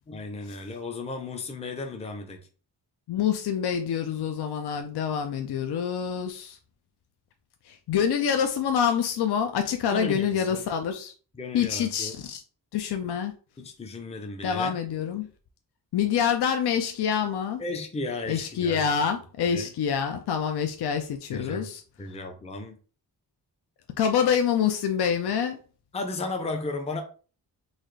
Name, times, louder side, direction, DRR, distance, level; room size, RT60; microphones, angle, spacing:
voice 1, 0.1-2.4 9.9-10.6 11.3-12.2 13.6-14.7 17.6-18.9 19.5-19.7 21.3-22.8 25.9-27.0, left 3 dB, 15° left, 0.5 m, -35 dB
voice 2, 3.1-6.6 7.7-11.1 11.5-12.4 12.7-13.3 14.4-15.3 15.9-17.6 18.3-21.8 24.0-25.6, left 8 dB, 70° left, 0.5 m, -26 dB
4.0 x 2.4 x 3.2 m
wide cardioid pair, 135°, 42 cm